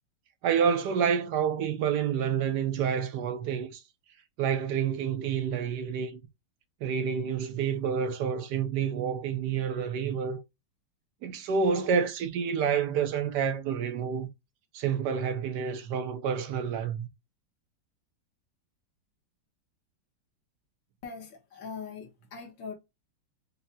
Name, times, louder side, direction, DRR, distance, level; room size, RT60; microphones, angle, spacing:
voice 1, 0.4-3.8 4.4-6.2 6.8-10.4 11.2-14.3 14.7-17.1, right 7 dB, 70° right, 1.3 m, -28 dB
voice 2, 21.0-22.7, left 5 dB, 85° left, 2.0 m, -41 dB
5.4 x 2.8 x 2.2 m
omnidirectional pair, 2.0 m